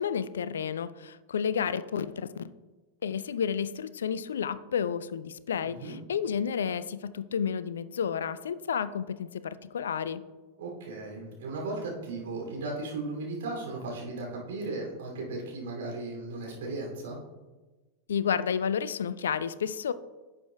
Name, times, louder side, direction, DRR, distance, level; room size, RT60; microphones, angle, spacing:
voice 1, 0.0-2.4 3.0-10.2 18.1-19.9, left 7 dB, 65° left, 15 dB, 0.3 m, -31 dB
voice 2, 5.6-5.9 10.6-17.2, right 2 dB, 55° right, -2 dB, 2.7 m, -36 dB
11.0 x 7.2 x 2.3 m, 1.2 s
figure-of-eight pair, 90°, 0 cm